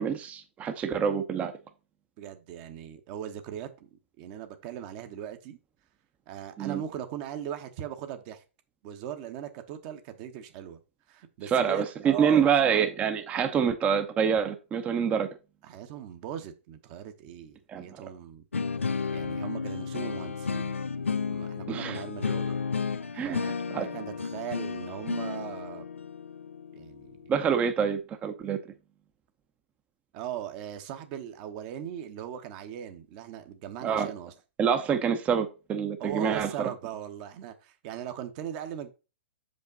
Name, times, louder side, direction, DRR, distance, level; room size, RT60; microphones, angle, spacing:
voice 1, 0.0-1.5 6.6-6.8 11.5-15.3 17.7-17.8 21.7-22.0 23.1-23.9 27.3-28.6 33.8-34.1 34.6-36.7, right 7 dB, 20° right, 0.7 m, -26 dB
voice 2, 2.2-3.9 4.2-5.6 6.3-8.4 8.8-10.8 11.1-12.5 15.6-18.4 19.1-20.8 21.3-22.6 23.2-25.9 26.7-27.2 30.1-34.3 36.0-38.9, right 10 dB, 40° right, 1.1 m, -39 dB
sound 1, 18.5-27.5, left 5 dB, 85° left, 0.4 m, -33 dB
6.7 x 5.2 x 4.0 m
figure-of-eight pair, 115°, 7 cm